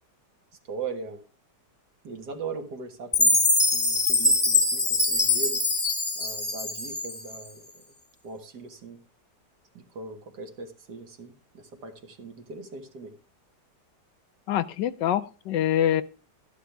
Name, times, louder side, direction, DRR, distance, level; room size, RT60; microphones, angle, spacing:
voice 1, 0.7-1.2 2.0-3.4 3.7-5.7 6.2-7.6 8.2-9.0 9.7-13.1, right 4 dB, 70° right, 5 dB, 2.2 m, -39 dB
Chime, 3.1-7.4, left 2 dB, 15° left, 1.1 m, -23 dB
voice 2, 14.5-16.0, left 11 dB, 80° left, 14 dB, 1.4 m, -25 dB
13.0 x 11.5 x 3.4 m, 0.33 s
omnidirectional pair, 1.9 m